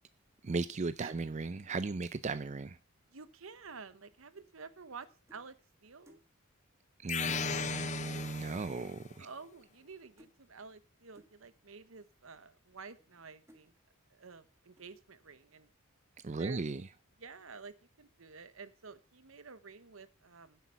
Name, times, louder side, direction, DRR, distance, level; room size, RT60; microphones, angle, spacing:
voice 1, 0.4-2.8 7.0-9.3 16.2-16.8, right 3 dB, 35° right, 0.4 m, -36 dB
voice 2, 3.1-5.6 5.8-6.2 9.2-13.7 14.1-15.7 16.4-16.6 17.2-20.6, right 4 dB, 70° right, 1.0 m, -50 dB
sound 1, 5.3-5.5 6.0-6.3 6.7-6.8 7.2-7.4 8.3-8.4 8.6-9.0 9.2-9.9 10.2-10.4 11.1-11.4 12.1-12.2 12.8-13.1 13.5-13.7 14.2-14.5 14.8-15.1, equal, 15° right, 1.7 m, -64 dB
sound 2, 7.1-9.0, left 7 dB, 35° left, 0.5 m, -37 dB
10.5 x 8.2 x 5.8 m
head